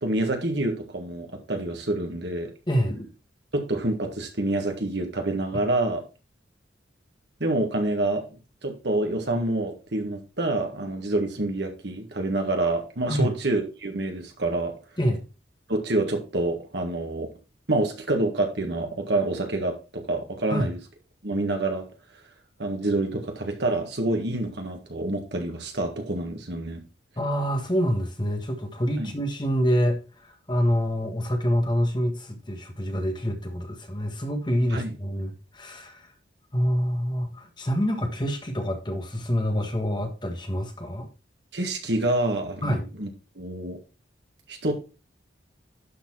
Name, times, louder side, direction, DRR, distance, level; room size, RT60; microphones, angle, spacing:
voice 1, 0.0-2.5 3.5-6.0 7.4-8.2 8.6-14.7 15.7-17.3 17.7-20.8 21.2-21.8 22.6-26.8 29.0-29.1 34.7-34.9 41.5-43.1 43.4-43.8 44.5-44.7, right 2 dB, 70° right, 3 dB, 1.8 m, -27 dB
voice 2, 2.7-3.1 5.5-5.6 13.1-13.4 15.0-15.2 20.5-20.7 27.2-36.1 36.5-41.1 42.6-42.9, equal, 25° left, 5 dB, 1.3 m, -26 dB
11.5 x 4.3 x 4.2 m, 0.32 s
head